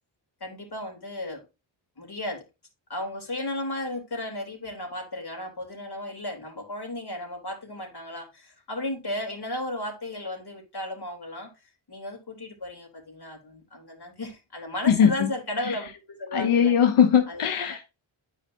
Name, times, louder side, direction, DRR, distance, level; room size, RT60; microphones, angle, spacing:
voice 1, 0.4-1.4 2.0-2.4 2.9-11.5 11.9-16.7 17.3-17.8, left 1 dB, 50° left, 3.3 m, -34 dB
voice 2, 14.9-15.3 15.6-15.8 16.3-17.9, left 8 dB, 90° left, 1.0 m, -20 dB
10.0 x 4.9 x 2.7 m
cardioid pair, 95°, 49 cm